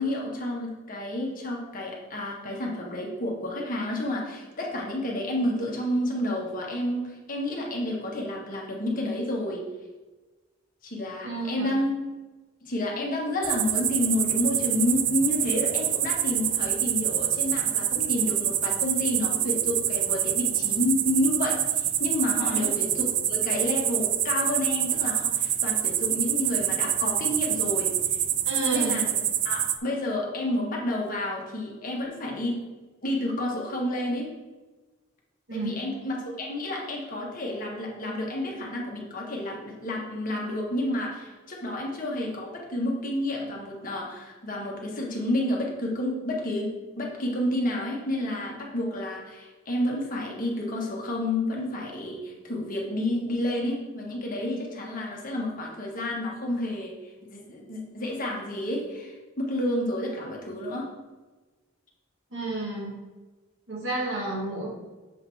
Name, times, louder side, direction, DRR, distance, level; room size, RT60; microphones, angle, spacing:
voice 1, 0.0-9.6 10.8-11.9 12.6-27.9 28.7-29.2 29.4-32.6 33.0-34.3 35.5-46.7 46.9-60.9, left 1 dB, 40° left, -2 dB, 1.3 m, -30 dB
voice 2, 11.2-11.8 22.4-22.7 28.5-29.0 35.5-35.9 62.3-63.0 63.7-64.7, right 2 dB, 65° right, -4 dB, 2.0 m, -31 dB
sound 1, 13.4-29.8, right 11 dB, 40° right, 0.3 m, -26 dB
7.2 x 3.9 x 4.7 m, 1.2 s
head